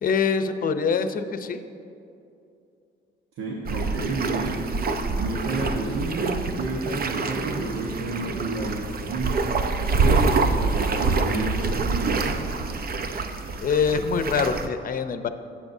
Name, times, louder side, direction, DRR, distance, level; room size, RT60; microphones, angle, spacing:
voice 1, 0.0-1.6 9.7-9.9 13.6-15.3, left 5 dB, 45° left, 9 dB, 0.7 m, -24 dB
voice 2, 3.4-4.6 5.2-9.4 10.0-12.4, right 2 dB, 90° right, -2 dB, 1.3 m, -30 dB
sound 1, 3.7-14.7, right 4 dB, 50° right, 0.7 m, -26 dB
17.5 x 7.4 x 2.7 m, 2.6 s
cardioid pair, 90°, 20 cm